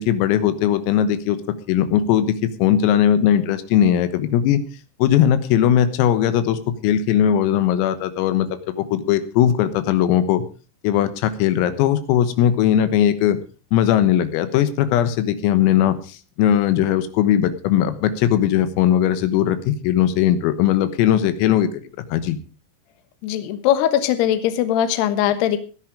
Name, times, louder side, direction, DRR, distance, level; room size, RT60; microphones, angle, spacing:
voice 1, 0.0-1.4 1.7-4.6 5.0-10.4 10.8-13.4 13.7-21.7 22.1-22.4, left 10 dB, 90° left, 12 dB, 3.9 m, -19 dB
voice 2, 23.2-25.6, left 11 dB, 65° left, 11 dB, 2.9 m, -20 dB
16.5 x 10.5 x 4.9 m, 0.35 s
omnidirectional pair, 5.9 m